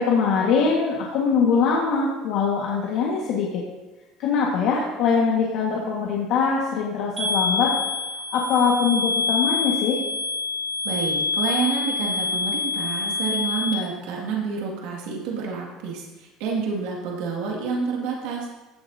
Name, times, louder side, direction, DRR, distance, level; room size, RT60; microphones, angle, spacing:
voice 1, 0.0-3.6 4.2-7.7 8.3-10.0, left 5 dB, 65° left, -3 dB, 1.7 m, -22 dB
sound 1, 7.2-13.7, left 4 dB, 20° right, 3.5 m, -26 dB
voice 2, 10.8-18.5, right 5 dB, 80° right, -2 dB, 2.2 m, -28 dB
15.5 x 8.8 x 2.8 m, 1.1 s
cardioid pair, 130°, 0 cm